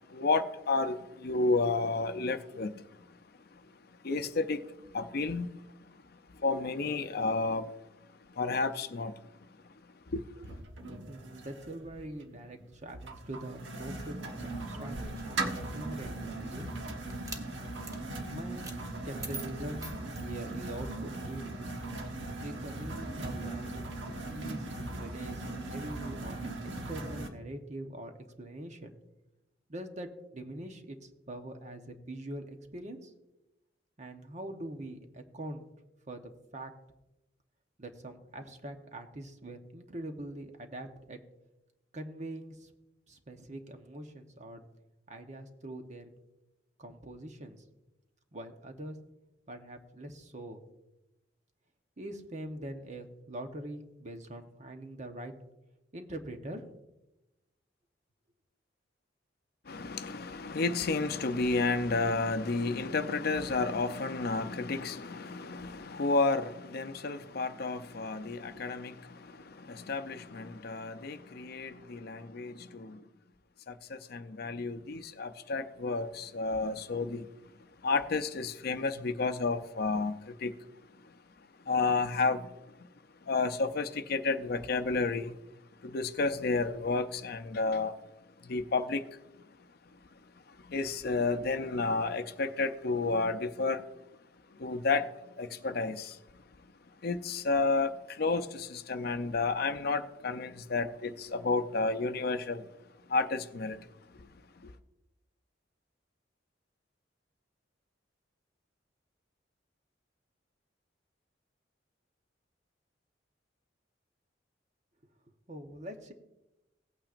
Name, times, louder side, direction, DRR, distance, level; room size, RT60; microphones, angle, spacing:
voice 1, 0.0-2.8 3.5-3.6 4.0-5.5 6.3-7.7 8.3-9.1 10.1-10.2 59.7-73.0 73.7-77.3 77.8-80.6 81.0-81.1 81.7-82.5 82.8-82.9 83.2-85.3 85.8-87.9 88.4-89.1 90.5-93.8 94.6-95.1 95.4-96.2 97.0-102.7 103.1-103.9 104.2-104.3 104.6-104.7, left 3 dB, 55° left, 0.6 m, -31 dB
sound 1, 10.4-27.3, right 2 dB, 85° right, 1.2 m, -39 dB
voice 2, 11.1-15.0 15.2-16.7 18.3-19.9 20.2-21.6 22.4-26.5 26.9-28.9 29.7-33.1 34.0-35.6 36.1-36.7 37.8-41.2 41.9-42.7 43.1-44.6 45.1-46.1 46.8-47.6 48.3-49.0 49.5-50.6 52.0-55.3 55.9-56.7 115.5-116.1, right 1 dB, 40° right, 1.0 m, -43 dB
sound 2, 14.7-16.3 17.1-17.5 17.8-18.0 18.6-18.8 19.2-20.8, right 2 dB, 20° right, 0.9 m, -45 dB
17.5 x 8.8 x 2.5 m
head